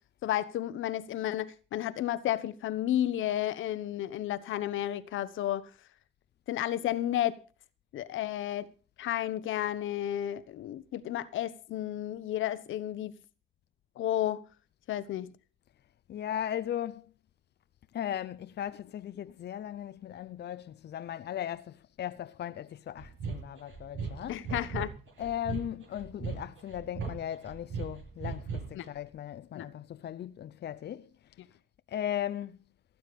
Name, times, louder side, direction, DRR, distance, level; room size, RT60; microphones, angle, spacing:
voice 1, 0.2-5.7 6.5-7.4 7.9-8.7 9.0-13.1 14.0-14.4 14.9-15.3 24.3-24.9 28.7-28.9 29.5-29.7, left 12 dB, 80° left, 1.1 m, -32 dB
voice 2, 16.1-17.1 17.9-24.4 25.2-31.1 31.9-32.6, left 10 dB, 55° left, 0.7 m, -37 dB
sound 1, 23.0-28.9, right 5 dB, 75° right, 7.9 m, -38 dB
17.5 x 9.6 x 5.3 m
cardioid pair, 90°, 20 cm